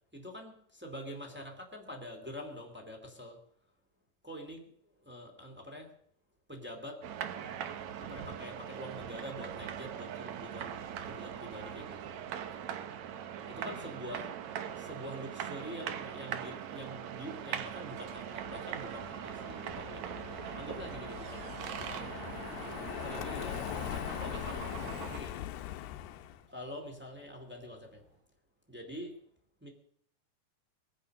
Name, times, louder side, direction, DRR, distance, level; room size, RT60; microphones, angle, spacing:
voice 1, 0.1-3.4 4.2-6.0 6.5-7.1 7.6-7.7 8.0-10.8 11.0-12.1 13.5-14.3 14.7-22.2 22.6-25.5 26.5-28.0 28.7-29.2 29.6-29.7, equal, 5° right, 0 dB, 1.2 m, -46 dB
sound 1, 7.0-25.2, right 9 dB, 85° right, 1.6 m, -41 dB
Car passing by, 17.9-26.4, left 12 dB, 80° left, 2.6 m, -42 dB
sound 2, 20.8-28.2, equal, 25° right, 5.6 m, -64 dB
21.0 x 10.0 x 6.5 m, 0.67 s
omnidirectional pair, 4.8 m